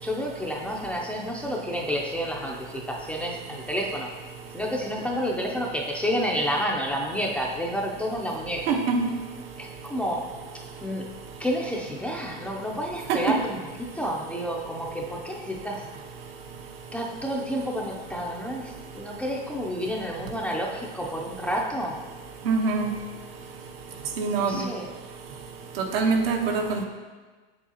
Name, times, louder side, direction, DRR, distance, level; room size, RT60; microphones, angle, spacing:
voice 1, 0.0-4.1 4.5-8.8 9.6-11.1 11.4-13.6 13.9-15.9 16.9-22.0 24.4-24.9, equal, 5° left, -2 dB, 0.4 m, -30 dB
voice 2, 8.7-9.0 13.1-13.2 22.4-22.9 24.2-24.6 25.8-26.8, right 4 dB, 80° right, 3 dB, 1.1 m, -24 dB
7.3 x 6.8 x 2.8 m, 1.4 s
supercardioid pair, 140°, 30 cm